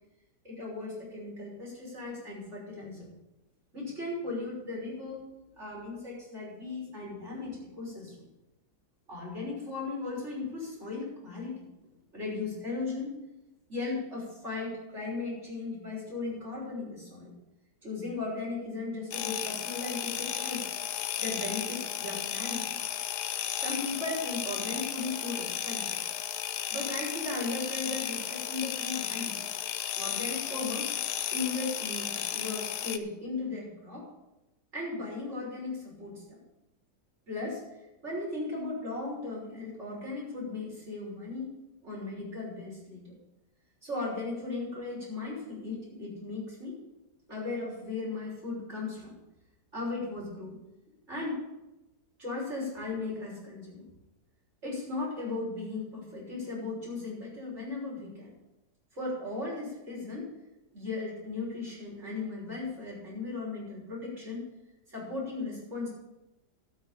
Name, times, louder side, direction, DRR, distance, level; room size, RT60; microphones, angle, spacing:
voice 1, 0.4-3.1 3.7-5.3 5.6-8.3 9.1-11.7 12.1-13.1 13.7-17.3 17.8-20.7 21.2-22.8 23.6-26.0 26.7-29.4 30.0-30.9 31.3-34.1 34.7-36.4 37.3-37.6 38.0-41.5 41.8-43.1 43.8-46.8 47.3-49.1 49.7-50.6 51.1-51.4 52.2-53.8 54.6-58.3 58.9-60.3 60.7-64.4 64.9-65.9, left 3 dB, 45° right, -5 dB, 6.6 m, -37 dB
sound 1, 19.1-33.0, left 10 dB, 80° left, 1.3 m, -34 dB
12.5 x 6.7 x 8.9 m, 0.95 s
omnidirectional pair, 1.7 m